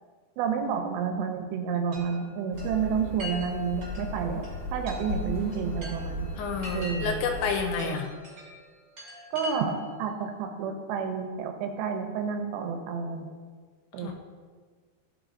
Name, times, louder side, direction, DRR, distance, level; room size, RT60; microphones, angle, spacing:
voice 1, 0.4-4.5 4.7-6.3 6.7-7.2 7.8-8.0 9.3-13.3 13.9-14.1, right 6 dB, 80° right, 5 dB, 2.8 m, -30 dB
Chime, 1.9-10.0, left 2 dB, 40° right, 1.7 m, -43 dB
sound 1, 2.5-7.8, left 1 dB, 70° left, 2.9 m, -36 dB
voice 2, 6.4-8.1 14.0-14.1, left 5 dB, 85° left, 3 dB, 3.1 m, -30 dB
13.0 x 5.3 x 2.6 m, 1.5 s
omnidirectional pair, 5.1 m